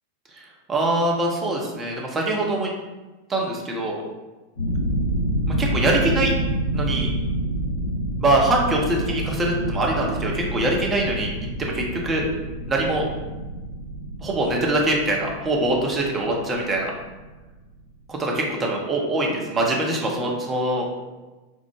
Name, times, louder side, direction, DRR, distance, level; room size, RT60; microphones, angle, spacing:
voice 1, 0.3-2.7 3.3-4.0 5.5-6.3 6.7-7.1 8.2-11.3 11.6-12.2 12.7-13.0 14.2-16.9 18.1-20.9, right 2 dB, 20° right, -1 dB, 0.7 m, -23 dB
sound 1, 4.5-17.7, right 1 dB, 70° left, 1.3 m, -28 dB
4.4 x 2.1 x 3.1 m, 1.2 s
figure-of-eight pair, 90°, 0 cm